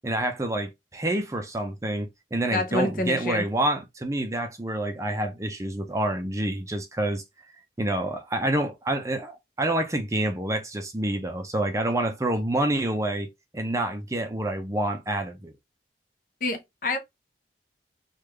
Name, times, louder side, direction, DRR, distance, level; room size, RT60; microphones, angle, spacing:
voice 1, 0.0-7.2 7.8-13.3 13.5-15.5, right 1 dB, 15° right, 0.5 m, -27 dB
voice 2, 2.5-3.4 16.4-17.0, left 2 dB, 50° left, 0.7 m, -27 dB
3.4 x 2.3 x 3.1 m
head